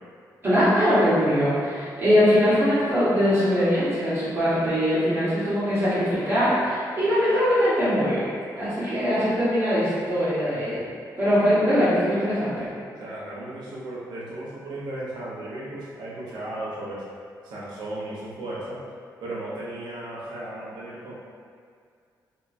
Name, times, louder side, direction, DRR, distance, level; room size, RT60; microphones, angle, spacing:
voice 1, 0.4-8.3 8.6-10.8 11.2-12.7, equal, 35° right, -12 dB, 1.4 m, -22 dB
voice 2, 13.0-17.0 17.4-18.8 19.2-21.1, right 1 dB, 85° right, -7 dB, 0.9 m, -35 dB
3.1 x 2.9 x 2.6 m, 2.2 s
cardioid pair, 95°, 7 cm